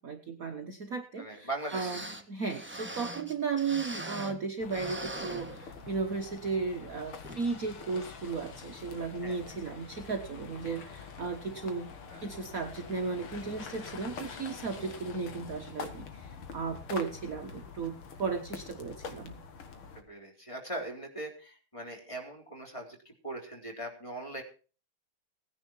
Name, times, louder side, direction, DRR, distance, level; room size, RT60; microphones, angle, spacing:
voice 1, 0.0-2.0 2.3-11.9 12.2-19.3, right 4 dB, 45° right, 6 dB, 1.4 m, -35 dB
voice 2, 1.2-1.9 9.2-9.6 12.1-12.2 19.9-24.4, right 1 dB, 15° left, 2 dB, 3.7 m, -40 dB
sound 1, 1.3-1.4 1.6-4.4 4.7-6.1 6.5-6.6 7.2-7.5 7.9-8.0, right 1 dB, 5° right, 1.1 m, -41 dB
sound 2, 4.6-20.0, left 5 dB, 80° left, 2.7 m, -45 dB
18.0 x 10.5 x 4.5 m, 0.36 s
omnidirectional pair, 2.3 m